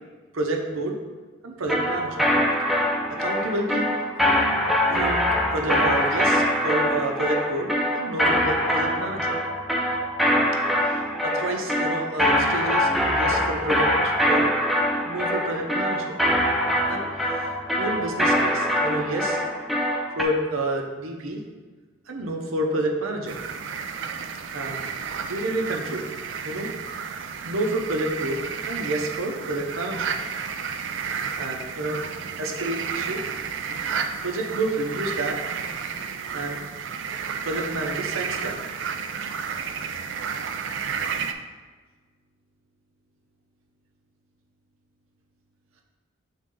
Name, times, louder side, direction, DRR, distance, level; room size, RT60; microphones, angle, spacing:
voice 1, 0.3-0.9 1.4-2.2 3.2-3.9 4.9-5.2 5.5-9.4 10.8-14.5 15.0-16.2 16.9-17.3 17.8-19.4 20.2-21.4 22.1-23.4 24.5-26.1 26.4-26.7 27.1-28.4 28.7-30.1 31.4-32.0 32.4-33.2 33.6-33.8 34.2-35.4 36.3-36.6 37.4-38.6 39.9-40.0, right 1 dB, 85° right, 1 dB, 0.9 m, -29 dB
sound 1, 1.7-20.2, equal, ahead, 0.5 m, -23 dB
sound 2, 23.3-41.3, right 6 dB, 65° right, 0.4 m, -32 dB
7.2 x 3.7 x 3.8 m, 1.4 s
head